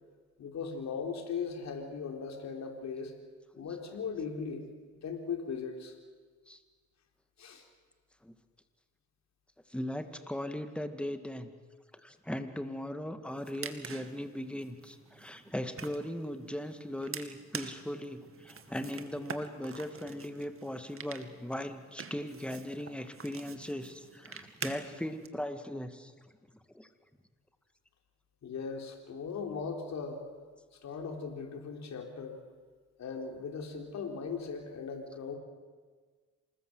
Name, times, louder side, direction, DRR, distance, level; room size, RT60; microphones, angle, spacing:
voice 1, 0.4-3.1 3.6-4.7 5.0-5.9 7.4-7.6 28.4-30.2 30.8-32.4 33.0-35.4, left 5 dB, 65° left, 3 dB, 4.1 m, -38 dB
voice 2, 9.7-11.5 12.0-26.1 26.7-26.9, left 1 dB, 5° left, 8 dB, 2.2 m, -38 dB
sound 1, 13.3-25.3, right 6 dB, 45° right, 2.2 m, -47 dB
27.0 x 20.0 x 8.0 m, 1.5 s
cardioid pair, 90°, 30 cm